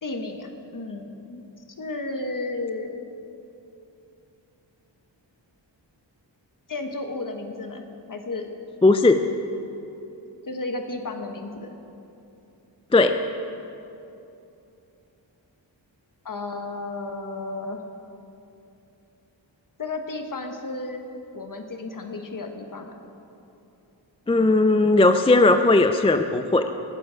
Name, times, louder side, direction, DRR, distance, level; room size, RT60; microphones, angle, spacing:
voice 1, 0.0-1.4 1.8-3.0 6.7-8.5 10.5-11.8 16.2-17.8 19.8-22.9, left 2 dB, 45° left, 5 dB, 1.2 m, -33 dB
voice 2, 8.8-9.3 12.9-13.2 24.3-26.7, left 2 dB, 15° left, 8 dB, 0.3 m, -17 dB
19.0 x 7.8 x 5.0 m, 2.8 s
wide cardioid pair, 100°, 45 cm